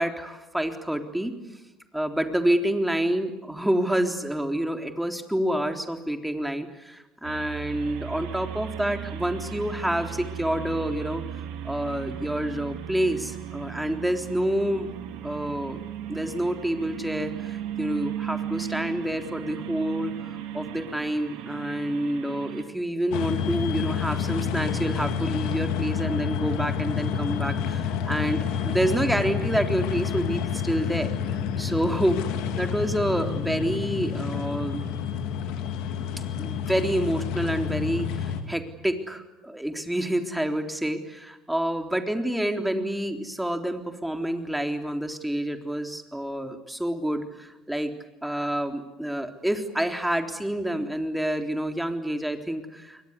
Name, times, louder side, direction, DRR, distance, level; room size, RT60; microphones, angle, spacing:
voice 1, 0.0-1.3 1.9-11.2 11.6-14.9 15.2-15.8 16.1-20.1 20.5-31.1 31.6-32.2 32.6-34.8 36.4-47.9 48.2-53.1, right 1 dB, 5° right, 5 dB, 3.7 m, -28 dB
sound 1, 7.2-22.6, right 10 dB, 65° right, 3.4 m, -36 dB
sound 2, 23.1-38.4, left 7 dB, 65° left, 2.9 m, -29 dB
29.5 x 23.0 x 8.4 m, 1.0 s
hypercardioid pair, 65°, 0 cm